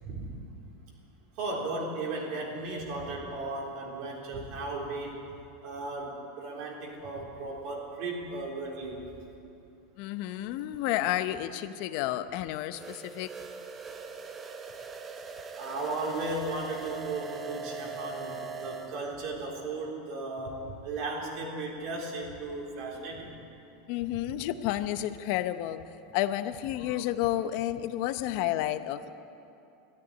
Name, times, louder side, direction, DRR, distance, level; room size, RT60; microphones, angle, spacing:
voice 1, 1.4-5.3 5.6-9.0 15.6-23.3, right 2 dB, 60° right, -1 dB, 3.8 m, -36 dB
voice 2, 10.0-13.3 23.9-25.8 26.1-29.1, left 13 dB, 60° left, 11 dB, 0.8 m, -31 dB
sound 1, 12.8-19.0, right 5 dB, 25° right, 1.0 m, -41 dB
13.5 x 10.5 x 9.9 m, 2.8 s
supercardioid pair, 120°, 0 cm